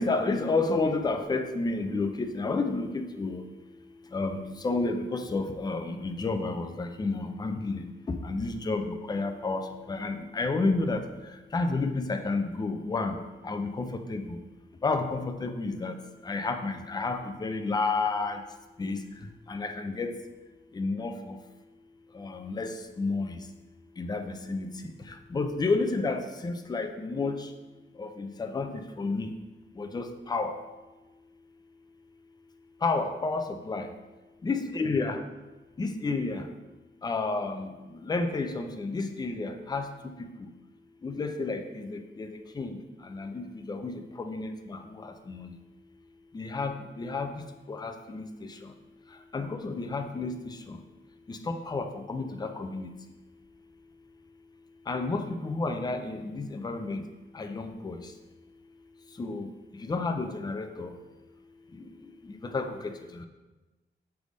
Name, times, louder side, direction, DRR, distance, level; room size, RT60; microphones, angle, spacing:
voice 1, 0.0-3.4 4.1-4.4 4.6-7.8 8.2-9.6 9.9-11.0 11.5-13.1 13.4-14.4 14.8-15.9 16.3-18.4 18.8-19.0 19.5-20.1 20.8-21.1 22.2-23.3 24.0-24.7 25.3-27.3 28.0-28.7 29.0-29.3 29.8-30.5 32.8-33.9 34.4-35.2 35.8-36.4 37.0-37.7 38.1-39.8 41.0-42.3 42.6-42.7 43.1-44.8 45.3-45.5 46.3-47.3 47.7-48.2 49.3-50.3 50.7-50.8 51.3-52.9 54.9-57.0 57.4-58.0 59.2-59.5 59.9-60.9 62.5-62.9, left 3 dB, 20° left, 6 dB, 0.4 m, -30 dB
6.4 x 3.4 x 5.2 m, 1.2 s
wide cardioid pair, 160°, 21 cm